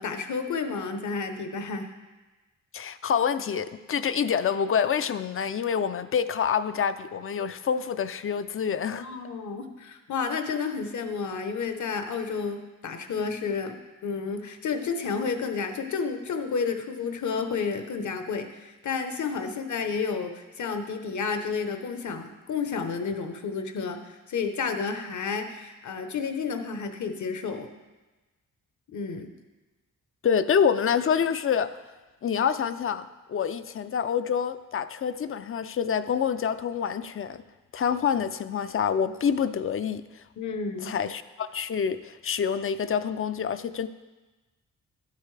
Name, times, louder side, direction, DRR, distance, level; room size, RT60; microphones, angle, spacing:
voice 1, 0.0-1.9 8.9-13.8 14.0-27.7 28.9-29.3 40.4-40.9, left 5 dB, 60° left, 7 dB, 1.0 m, -31 dB
voice 2, 2.7-9.1 19.4-19.5 30.2-31.7 32.2-37.4 37.7-40.2 40.8-43.9, left 7 dB, 40° left, 12 dB, 0.4 m, -27 dB
12.5 x 8.3 x 3.3 m, 1.2 s
cardioid pair, 115°, 33 cm